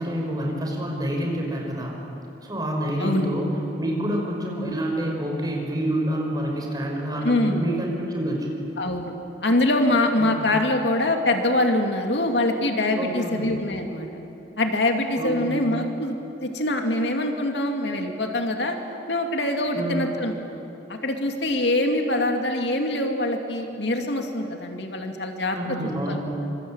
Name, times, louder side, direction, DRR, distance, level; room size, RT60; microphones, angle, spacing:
voice 1, 0.0-2.0 2.4-3.5 3.8-8.5 10.2-10.5 13.0-13.5 15.2-15.5 19.7-20.1 25.5-26.4, right 1 dB, 20° right, 0 dB, 5.7 m, -27 dB
voice 2, 3.0-3.3 4.6-4.7 7.2-7.6 8.8-9.1 9.4-14.1 14.6-16.2 16.4-18.8 19.1-20.6 20.9-25.6 26.1-26.2, left 1 dB, 70° left, 3 dB, 2.6 m, -24 dB
26.0 x 25.5 x 8.9 m, 2.9 s
head